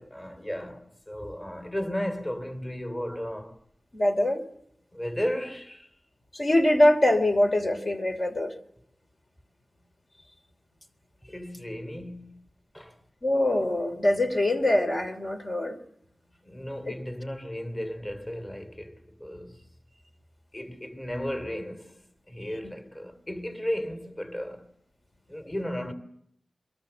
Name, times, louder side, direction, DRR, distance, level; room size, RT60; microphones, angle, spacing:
voice 1, 0.0-3.6 4.9-5.9 11.3-12.5 12.7-13.0 16.4-19.7 20.5-24.7 25.3-25.9, equal, 25° left, 2.9 m, -35 dB
voice 2, 3.9-4.4 6.3-8.6 13.2-15.8 16.9-17.0 22.6-22.7, left 1 dB, 50° left, 2.9 m, -23 dB
29.5 x 23.0 x 6.9 m
wide cardioid pair, 70°, 0 cm